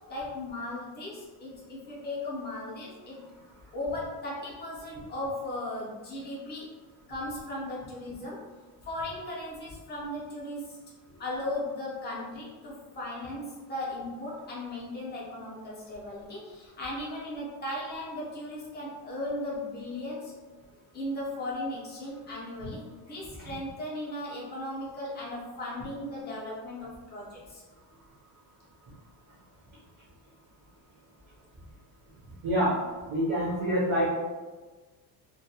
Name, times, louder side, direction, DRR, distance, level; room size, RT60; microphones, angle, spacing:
voice 1, 0.1-3.2 3.7-6.7 7.1-8.4 8.9-10.8 11.2-20.3 20.9-27.6, left 1 dB, 25° left, -6 dB, 0.6 m, -37 dB
voice 2, 32.4-32.7 33.1-34.1, equal, 25° right, -9 dB, 0.6 m, -26 dB
2.3 x 2.2 x 2.7 m, 1.3 s
cardioid pair, 180°, 43 cm